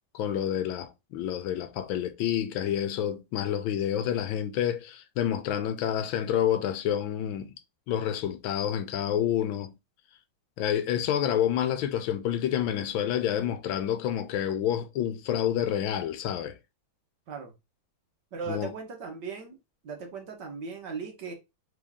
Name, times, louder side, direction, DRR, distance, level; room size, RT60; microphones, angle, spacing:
voice 1, 0.1-7.5 7.9-9.7 10.6-16.6 18.5-18.7, left 10 dB, 80° left, 1.4 m, -28 dB
voice 2, 18.3-19.6 19.8-21.3, right 5 dB, 60° right, 1.7 m, -38 dB
3.8 x 3.6 x 3.5 m
omnidirectional pair, 2.3 m